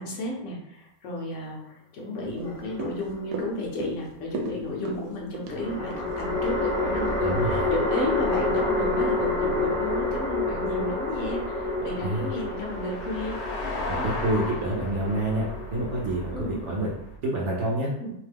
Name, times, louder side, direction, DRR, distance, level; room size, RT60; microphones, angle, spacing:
voice 1, 0.0-13.4 16.3-16.7 18.0-18.1, left 2 dB, 60° left, -2 dB, 1.0 m, -33 dB
sound 1, 2.2-8.7 9.1-9.2, right 3 dB, 80° right, 1.1 m, -38 dB
sound 2, 2.4-3.3 5.5-16.9, left 2 dB, 10° left, 0.3 m, -29 dB
sound 3, 5.5-17.2, left 2 dB, 80° left, 1.2 m, -39 dB
voice 2, 7.2-7.7 12.0-12.3 13.9-16.9 17.2-17.9, right 1 dB, 65° right, -3 dB, 0.8 m, -28 dB
2.8 x 2.2 x 3.3 m, 0.79 s
omnidirectional pair, 1.6 m